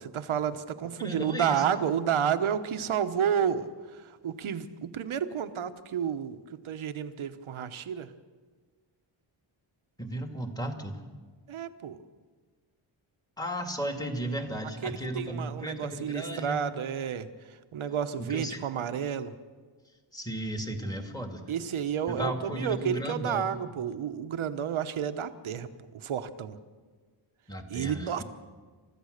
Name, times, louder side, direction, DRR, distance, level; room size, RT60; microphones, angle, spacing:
voice 1, 0.0-6.4 6.6-8.1 11.5-12.0 14.8-17.3 17.7-19.3 21.5-25.7 25.9-26.6 27.7-28.2, right 8 dB, 90° right, 9 dB, 1.2 m, -31 dB
voice 2, 1.0-1.8 10.0-11.0 13.4-16.6 18.2-18.7 20.1-21.4 22.1-23.6 27.5-28.2, right 1 dB, 10° left, 4 dB, 2.1 m, -35 dB
29.0 x 14.5 x 6.6 m, 1.5 s
wide cardioid pair, 130°, 47 cm